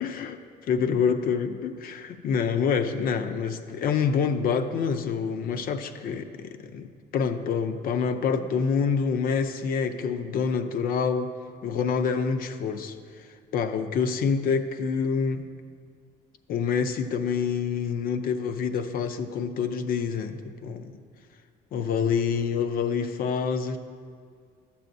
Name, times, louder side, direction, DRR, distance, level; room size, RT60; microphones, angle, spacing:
voice 1, 0.0-0.4 0.7-6.9 7.1-11.3 11.6-13.0 13.5-15.5 16.5-21.0 21.7-23.8, left 6 dB, 60° left, 9 dB, 0.5 m, -27 dB
11.5 x 6.9 x 2.6 m, 2.1 s
cardioid pair, 110°, 17 cm